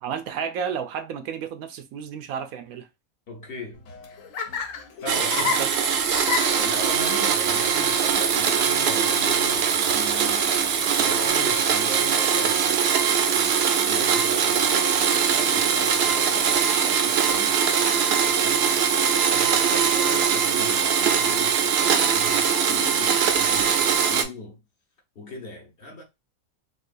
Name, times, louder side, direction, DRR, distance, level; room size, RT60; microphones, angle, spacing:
voice 1, 0.0-2.9 5.4-5.7, right 7 dB, 85° right, 1.0 m, -32 dB
voice 2, 3.3-3.8 5.0-5.6 6.6-10.5 11.0-24.6 25.2-26.0, left 2 dB, 50° left, 0.9 m, -39 dB
Laughter, 3.7-11.3, left 6 dB, 70° left, 1.1 m, -34 dB
Domestic sounds home sounds, 5.1-24.2, right 7 dB, 65° right, 0.6 m, -22 dB
3.8 x 2.4 x 2.5 m
omnidirectional pair, 1.5 m